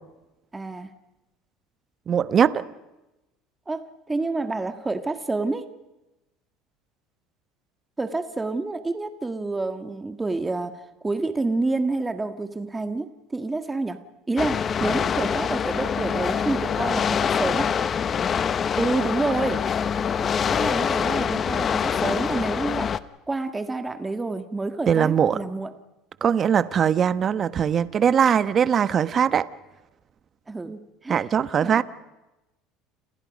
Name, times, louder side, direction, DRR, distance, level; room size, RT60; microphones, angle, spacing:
voice 1, 0.5-0.9 3.7-5.7 8.0-14.0 14.3-17.7 18.8-19.6 20.2-22.9 23.3-25.7 30.5-31.2 31.6-31.8, right 3 dB, 15° right, 1.7 m, -28 dB
voice 2, 2.1-2.6 24.9-25.4 26.2-29.5 31.1-31.8, right 8 dB, 40° right, 1.1 m, -21 dB
sound 1, 14.4-23.0, left 7 dB, 35° left, 1.0 m, -25 dB
29.0 x 28.5 x 5.3 m
supercardioid pair, 105°, 0 cm